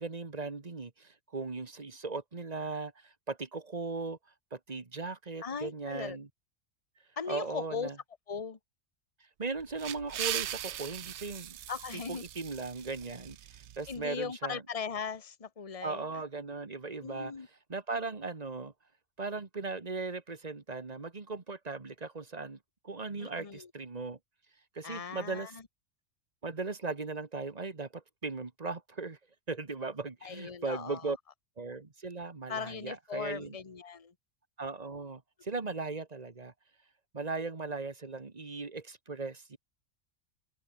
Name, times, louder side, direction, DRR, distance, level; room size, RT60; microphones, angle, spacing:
voice 1, 0.0-4.2 4.5-6.3 7.3-8.0 9.4-11.6 12.1-14.6 15.8-17.3 17.7-18.7 19.2-22.6 22.8-24.2 24.8-25.5 26.4-29.2 29.5-31.2 31.6-33.6 34.6-36.5 37.1-39.6, right 3 dB, 30° right, 1.6 m, -38 dB
voice 2, 5.4-6.2 7.2-7.9 8.3-8.6 11.7-12.2 13.9-16.2 17.0-17.5 23.2-23.7 24.8-25.6 30.2-31.1 32.5-34.1, left 6 dB, 30° left, 1.3 m, -39 dB
sound 1, 9.5-14.0, right 11 dB, 65° right, 1.0 m, -39 dB
omnidirectional pair, 1.3 m